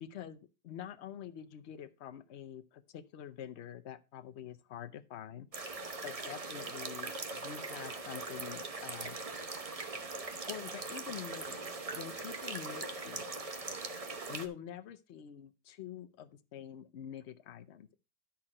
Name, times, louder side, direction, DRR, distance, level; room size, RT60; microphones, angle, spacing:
voice 1, 0.0-5.8 6.0-9.2 10.4-13.4 14.3-18.0, left 9 dB, 65° left, 0.7 m, -46 dB
sound 1, 5.5-14.5, right 3 dB, 35° right, 0.5 m, -41 dB
12.0 x 4.4 x 4.9 m
omnidirectional pair, 1.9 m